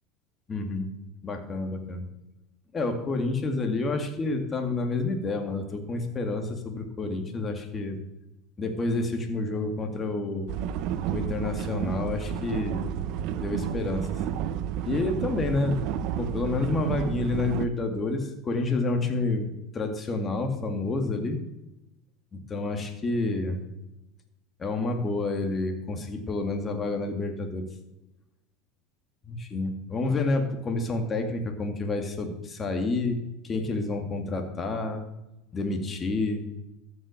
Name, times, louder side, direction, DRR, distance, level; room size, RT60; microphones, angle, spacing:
voice 1, 0.5-0.9 1.2-2.1 2.7-8.0 8.6-10.5 11.1-13.0 13.4-14.1 14.8-15.8 16.2-21.4 22.3-23.6 24.6-27.7 29.2-35.0 35.5-36.4, left 3 dB, 25° left, 5 dB, 2.4 m, -29 dB
sound 1, 10.5-17.7, right 10 dB, 60° right, 0.7 m, -31 dB
14.0 x 6.4 x 6.6 m, 0.92 s
supercardioid pair, 110°, 0 cm